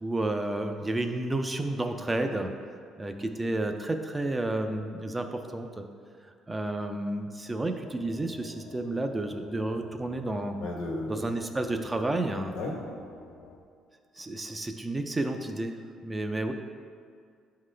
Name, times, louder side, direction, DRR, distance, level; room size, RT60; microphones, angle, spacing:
voice 1, 0.0-2.5 3.0-5.8 6.5-10.6 11.1-12.5 14.1-16.5, right 2 dB, 15° right, 5 dB, 0.3 m, -31 dB
sound 1, 7.8-13.6, left 2 dB, 65° left, 0.5 m, -50 dB
voice 2, 10.6-11.2 12.5-12.7, left 2 dB, 85° left, -1 dB, 1.2 m, -33 dB
8.8 x 3.8 x 3.2 m, 2.1 s
cardioid pair, 145°, 0 cm